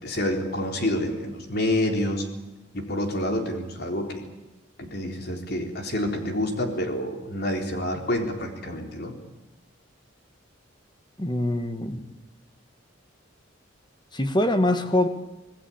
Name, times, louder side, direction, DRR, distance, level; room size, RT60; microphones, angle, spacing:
voice 1, 0.0-2.3 2.7-4.2 4.8-9.2, left 1 dB, 50° left, 4 dB, 3.9 m, -28 dB
voice 2, 11.2-12.0 14.1-15.1, left 1 dB, 20° left, 9 dB, 1.6 m, -23 dB
26.5 x 19.0 x 8.8 m, 1.1 s
head